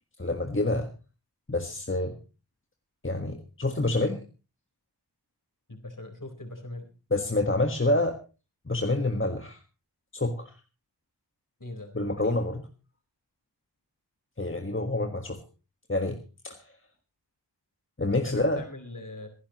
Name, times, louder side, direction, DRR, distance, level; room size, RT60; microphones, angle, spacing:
voice 1, 0.2-0.9 1.5-2.2 3.0-4.2 7.1-8.2 8.7-9.6 10.1-10.5 11.9-12.6 14.4-15.4 15.9-16.2 16.4-16.6 18.0-18.6, left 2 dB, 30° left, 4 dB, 1.5 m, -27 dB
voice 2, 5.7-6.9 11.6-12.4 18.1-19.3, left 2 dB, 45° left, 5 dB, 4.2 m, -41 dB
26.0 x 11.5 x 3.0 m, 0.32 s
wide cardioid pair, 45°, 42 cm